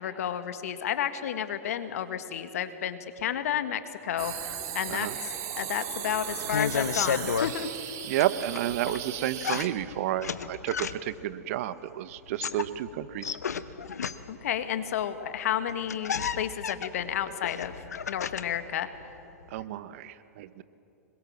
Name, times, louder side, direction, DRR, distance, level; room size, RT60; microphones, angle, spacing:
voice 1, 0.0-4.3 4.7-5.3 5.6-7.7 14.3-17.7 18.1-18.9, left 10 dB, 70° left, 10 dB, 1.7 m, -31 dB
sound 1, 4.2-9.6, right 9 dB, 40° right, 2.9 m, -37 dB
sound 2, 6.3-7.5 8.1-9.0 9.4-11.2 12.2-14.5 15.4-15.5 15.7-18.6 18.9-19.6, left 6 dB, 85° left, 0.9 m, -32 dB
voice 2, 8.0-13.4 19.5-20.6, right 13 dB, 60° right, 14 dB, 1.0 m, -31 dB
26.0 x 22.0 x 7.5 m, 2.9 s
hypercardioid pair, 105°, 8 cm